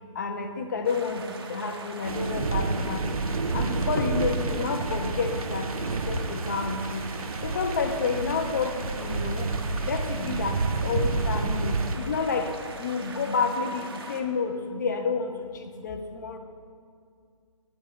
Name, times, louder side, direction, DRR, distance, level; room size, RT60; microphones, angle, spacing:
voice 1, 0.2-3.2 3.5-5.6 6.1-7.0 7.4-9.5 9.8-12.5 12.8-15.3 15.6-16.4, left 4 dB, 35° left, 6 dB, 0.4 m, -29 dB
sound 1, 0.8-14.2, right 4 dB, 45° right, 0.6 m, -41 dB
sound 2, 2.0-12.0, right 3 dB, 90° right, 0.4 m, -29 dB
7.8 x 4.3 x 3.8 m, 2.2 s
figure-of-eight pair, 145°, 18 cm